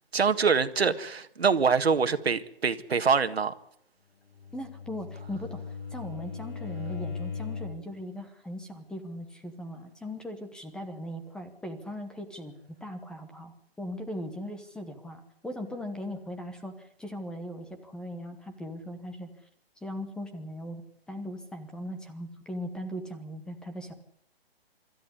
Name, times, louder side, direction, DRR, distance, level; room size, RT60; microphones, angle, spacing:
voice 1, 0.1-3.5, right 5 dB, 85° right, 1.8 m, -24 dB
Bowed string instrument, 4.3-7.9, left 5 dB, 55° left, 5.5 m, -38 dB
voice 2, 4.5-12.5 12.8-19.3 19.8-20.8 21.1-23.9, equal, 5° left, 1.1 m, -39 dB
25.5 x 13.5 x 9.9 m
hypercardioid pair, 155°, 30 cm